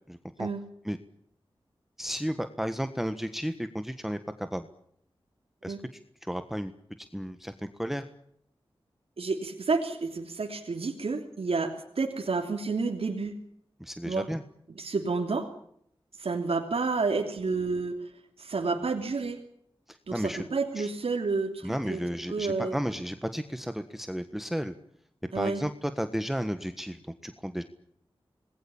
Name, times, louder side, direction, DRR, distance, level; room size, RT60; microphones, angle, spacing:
voice 1, 0.1-0.5 0.8-1.0 2.0-4.7 5.6-5.7 6.3-6.7 7.1-8.0 13.8-14.4 19.9-20.4 20.8-20.9 21.6-24.7 25.3-27.6, equal, 5° right, 9 dB, 1.5 m, -33 dB
voice 2, 9.2-13.3 14.0-14.3 14.7-15.5 16.2-18.0 18.4-19.4 20.1-22.0 22.3-22.8 25.3-25.6, right 4 dB, 90° right, 3 dB, 3.1 m, -30 dB
27.5 x 20.5 x 7.2 m, 0.70 s
wide cardioid pair, 90°, 10 cm